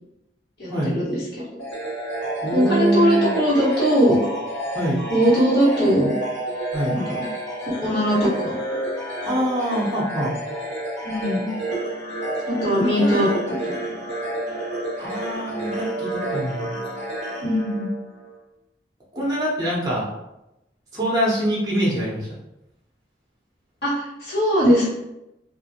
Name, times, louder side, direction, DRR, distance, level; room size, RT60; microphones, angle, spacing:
voice 1, 0.6-1.6 2.5-4.2 5.1-6.1 6.9-7.2 7.6-8.6 11.0-11.5 12.5-13.3 13.9-14.1 17.4-17.9 23.8-24.8, equal, 60° left, -9 dB, 1.2 m, -20 dB
sound 1, 1.6-18.3, right 1 dB, 85° left, 1.1 m, -30 dB
voice 2, 2.4-3.3 4.7-5.0 6.7-7.0 9.2-10.4 13.0-13.3 15.0-16.7 19.1-20.1 20.9-22.3, right 1 dB, 20° right, -6 dB, 0.6 m, -24 dB
2.4 x 2.0 x 2.7 m, 0.91 s
head